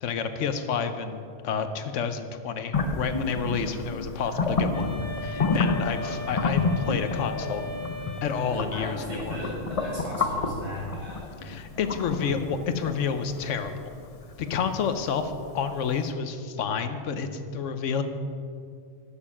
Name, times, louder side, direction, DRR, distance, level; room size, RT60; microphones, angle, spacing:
voice 1, 0.0-5.0 5.2-7.6 8.2-9.0 9.3-9.4 11.4-13.9 14.4-18.0, left 6 dB, 80° left, 9 dB, 1.1 m, -29 dB
sound 1, 2.7-15.6, left 3 dB, 35° left, 0.7 m, -30 dB
Wind instrument woodwind instrument, 4.7-8.9, left 3 dB, 60° left, 1.8 m, -38 dB
voice 2, 8.2-11.3, equal, 60° right, -6 dB, 3.3 m, -37 dB
12.0 x 7.1 x 5.6 m, 2.4 s
omnidirectional pair, 1.3 m